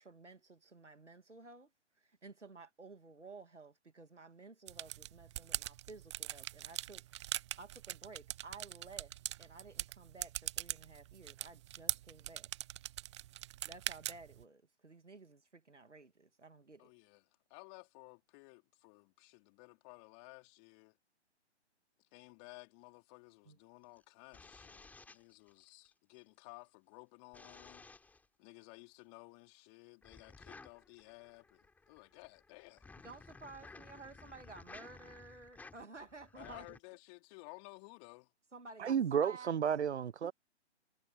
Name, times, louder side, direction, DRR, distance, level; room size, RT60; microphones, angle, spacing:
voice 1, 0.0-1.7 2.0-12.5 13.6-16.9 23.5-23.6 33.0-36.8 38.5-39.5 40.2-40.3, right 3 dB, 90° right, 2.1 m, -54 dB
sound 1, 4.7-14.4, right 14 dB, 25° right, 0.9 m, -42 dB
voice 2, 16.8-17.2 17.5-21.0 22.1-27.9 28.4-32.8 36.3-38.3, left 36 dB, 25° left, 3.9 m, -56 dB
sound 2, 23.8-25.9 27.3-28.3 30.0-36.8, left 3 dB, 5° left, 4.0 m, -56 dB
voice 3, 38.8-40.3, right 8 dB, 70° right, 0.7 m, -32 dB
figure-of-eight pair, 140°, 35 cm